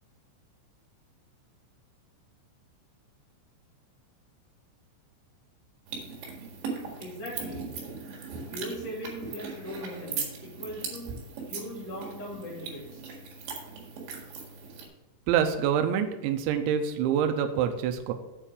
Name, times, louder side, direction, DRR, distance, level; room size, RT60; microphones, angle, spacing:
sound 1, 5.9-14.9, right 5 dB, 65° right, 4.0 m, -39 dB
voice 1, 7.0-7.7 8.5-11.1 11.5-13.0, equal, 30° left, -4 dB, 2.2 m, -39 dB
voice 2, 15.3-18.1, right 8 dB, 85° right, 6 dB, 2.7 m, -26 dB
8.7 x 4.5 x 7.3 m, 0.98 s
omnidirectional pair, 5.9 m